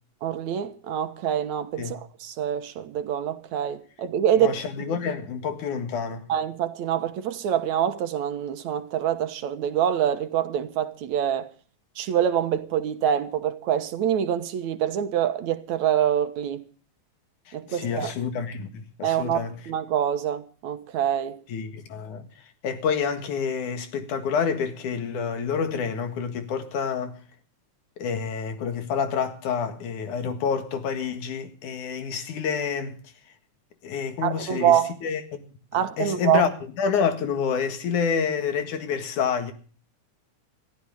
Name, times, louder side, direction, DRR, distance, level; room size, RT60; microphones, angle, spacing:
voice 1, 0.2-4.5 6.3-11.5 12.0-16.6 17.5-18.1 19.0-21.4 34.2-35.0 35.7-36.4, right 9 dB, 70° right, 2.4 m, -25 dB
voice 2, 4.4-6.3 17.5-19.6 21.5-27.2 28.0-33.0 33.8-35.5 36.0-36.5 36.8-39.5, left 6 dB, 75° left, 3.3 m, -28 dB
21.5 x 14.0 x 3.6 m
omnidirectional pair, 3.5 m